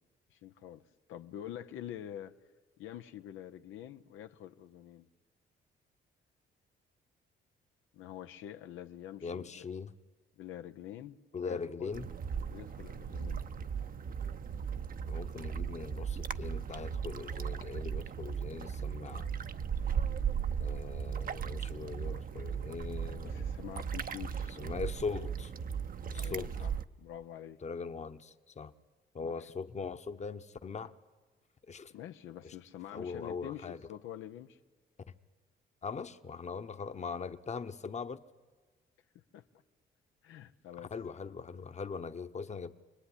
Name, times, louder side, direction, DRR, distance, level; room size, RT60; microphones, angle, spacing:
voice 1, 0.3-0.8 1.1-2.3 2.8-5.1 7.9-9.6 10.4-11.9 12.5-13.4 23.2-24.5 26.1-27.6 29.2-29.5 31.9-34.6 39.3-39.5 40.2-40.9, left 11 dB, 85° left, 0.8 m, -46 dB
voice 2, 9.2-9.9 11.3-12.1 15.1-19.3 20.6-23.5 24.5-25.5 26.1-26.5 27.6-28.7 29.1-30.9 31.7-31.9 32.4-32.5 32.9-33.8 35.8-38.2 40.9-42.8, left 5 dB, 35° left, 1.1 m, -41 dB
sound 1, 11.9-26.8, right 7 dB, 45° right, 0.8 m, -37 dB
25.5 x 20.0 x 9.9 m
cardioid pair, 90°, 20 cm